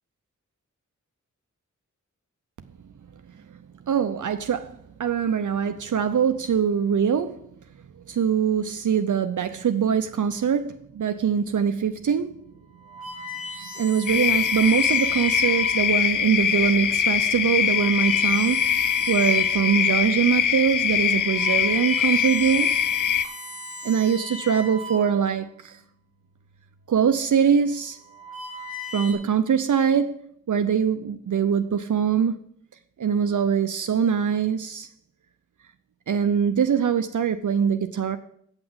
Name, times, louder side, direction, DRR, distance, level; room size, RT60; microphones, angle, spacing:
voice 1, 3.9-7.4 8.1-12.4 13.6-18.8 19.1-22.7 23.8-25.8 26.9-28.0 28.9-30.2 30.5-32.4 33.0-34.9 36.1-38.2, right 7 dB, 70° right, 0.6 m, -23 dB
sound 1, 11.8-12.0 12.6-16.0 16.7-16.9 17.5-20.0 20.4-20.5 21.0-25.5 26.5-26.9 27.8-29.1, left 1 dB, 40° left, 3.7 m, -38 dB
sound 2, 14.1-23.3, left 8 dB, 70° left, 0.6 m, -23 dB
8.9 x 5.9 x 7.8 m
wide cardioid pair, 75°, 32 cm